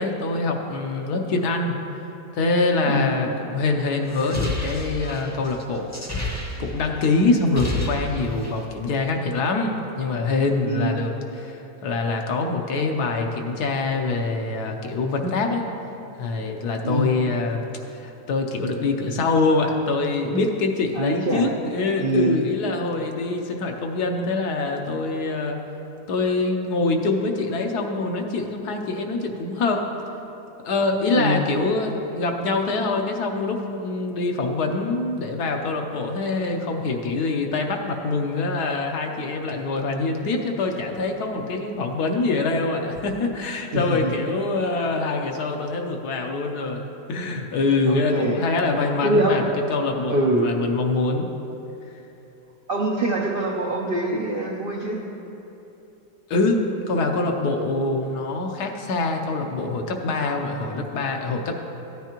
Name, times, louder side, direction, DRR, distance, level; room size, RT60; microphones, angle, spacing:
voice 1, 0.0-1.8 2.3-5.9 6.6-11.1 11.4-15.6 16.2-25.6 26.1-29.9 30.6-51.3 56.3-61.5, left 3 dB, 70° left, 3 dB, 1.3 m, -24 dB
voice 2, 2.9-3.2 10.6-11.0 16.8-17.1 20.9-21.6 22.0-22.4 31.1-31.5 43.7-44.1 47.8-48.4 49.0-49.5 50.1-50.5 52.7-55.0 61.5-61.6, right 1 dB, 60° right, -2 dB, 0.6 m, -24 dB
sound 1, 4.1-7.0 7.3-8.7, left 2 dB, 15° left, 0.7 m, -30 dB
14.0 x 9.3 x 3.0 m, 2.9 s
omnidirectional pair, 1.8 m